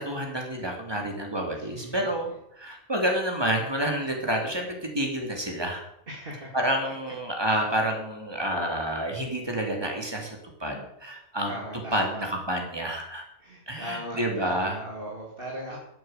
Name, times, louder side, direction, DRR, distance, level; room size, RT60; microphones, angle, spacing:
voice 1, 0.0-5.8 6.5-11.6 11.9-13.2 13.7-14.8, right 1 dB, 15° right, 2 dB, 3.1 m, -29 dB
voice 2, 1.6-2.1 6.1-7.1 7.4-7.6 11.5-12.2 13.4-15.8, equal, 40° right, -3 dB, 2.8 m, -39 dB
12.0 x 8.5 x 8.1 m, 0.79 s
omnidirectional pair, 1.5 m